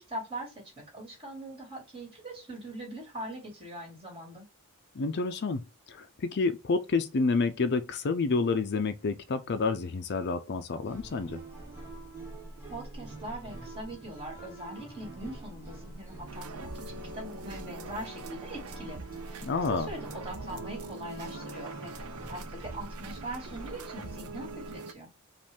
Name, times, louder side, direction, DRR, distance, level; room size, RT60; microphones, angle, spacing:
voice 1, 0.0-4.4 12.7-16.5 16.7-19.0 19.3-19.4 19.7-25.1, right 1 dB, 25° right, 2.5 m, -42 dB
voice 2, 4.9-11.4 19.4-19.9, left 4 dB, 50° left, 0.5 m, -29 dB
sound 1, 10.8-24.8, right 2 dB, 10° right, 2.3 m, -45 dB
sound 2, 16.3-24.9, right 3 dB, 90° right, 0.7 m, -44 dB
5.1 x 2.5 x 3.5 m
head